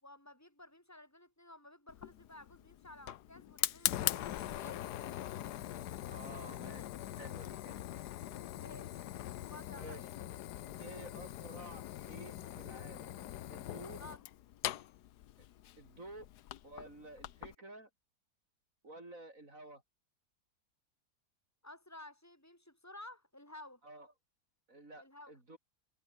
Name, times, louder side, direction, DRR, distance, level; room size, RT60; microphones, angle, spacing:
voice 1, 0.0-4.8 8.5-8.9 9.3-10.0 13.8-14.2 21.6-23.8 25.0-25.3, left 1 dB, 10° left, 6.3 m, -54 dB
Fire, 1.9-17.6, left 13 dB, 90° left, 1.3 m, -42 dB
voice 2, 6.1-6.8 7.2-7.8 9.8-10.1 10.8-13.2 13.5-14.0 15.8-16.3 16.6-17.9 18.8-19.8 23.8-24.1 24.7-25.6, right 2 dB, 55° right, 5.6 m, -51 dB
omnidirectional pair, 1.7 m